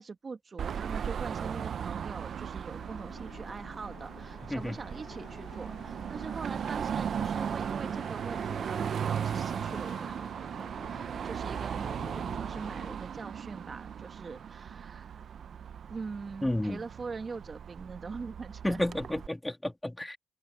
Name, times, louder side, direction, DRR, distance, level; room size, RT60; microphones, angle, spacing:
voice 1, 0.0-15.2 15.9-18.8, right 4 dB, 40° right, 1.7 m, -43 dB
Car passing by / Traffic noise roadway noise / Engine, 0.6-19.3, right 8 dB, 60° right, 0.8 m, -37 dB
sound 1, 2.4-12.9, left 7 dB, 60° left, 2.9 m, -51 dB
voice 2, 16.4-16.8 18.6-20.2, left 1 dB, 10° left, 2.8 m, -31 dB
cardioid pair, 70°, 0 cm